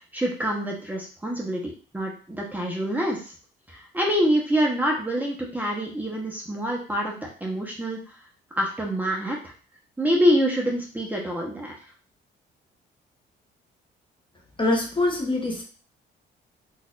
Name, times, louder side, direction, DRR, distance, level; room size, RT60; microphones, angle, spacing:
voice 1, 0.1-3.3 3.7-8.0 8.5-9.4 10.0-11.7, equal, 10° right, -2 dB, 0.9 m, -26 dB
voice 2, 14.6-15.6, left 2 dB, 25° left, 0 dB, 0.9 m, -24 dB
4.1 x 2.5 x 2.5 m, 0.38 s
cardioid pair, 90°, 20 cm